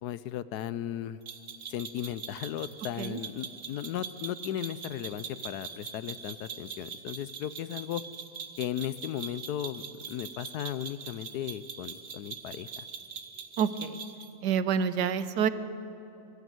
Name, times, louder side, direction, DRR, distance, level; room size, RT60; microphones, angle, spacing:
voice 1, 0.0-1.2 1.7-8.0 8.6-12.8, left 11 dB, 75° left, 16 dB, 1.1 m, -36 dB
sound 1, 1.3-14.3, right 6 dB, 50° right, 1.3 m, -42 dB
voice 2, 13.6-14.0 14.4-15.5, right 7 dB, 80° right, 13 dB, 1.3 m, -27 dB
22.5 x 13.5 x 9.4 m, 3.0 s
omnidirectional pair, 1.8 m